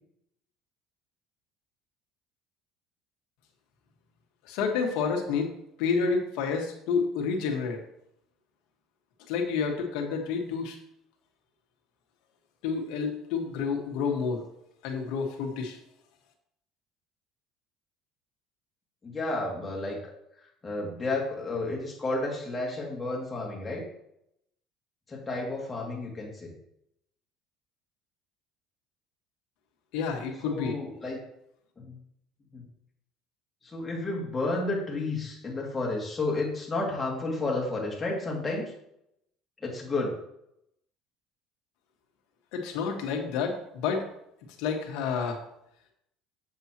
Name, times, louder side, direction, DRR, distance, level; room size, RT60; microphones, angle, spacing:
voice 1, 4.4-5.5 5.8-7.8 9.3-10.8 12.6-14.4 14.8-15.8 29.9-30.8 42.5-44.0 44.6-45.4, left 5 dB, 75° left, 3 dB, 1.5 m, -29 dB
voice 2, 19.0-20.0 20.6-23.9 25.1-26.5 30.4-31.2 31.8-32.0 32.5-32.6 33.6-38.7 39.6-40.1, left 2 dB, 20° left, -2 dB, 2.4 m, -31 dB
7.2 x 7.2 x 3.0 m, 0.77 s
supercardioid pair, 105°, 0 cm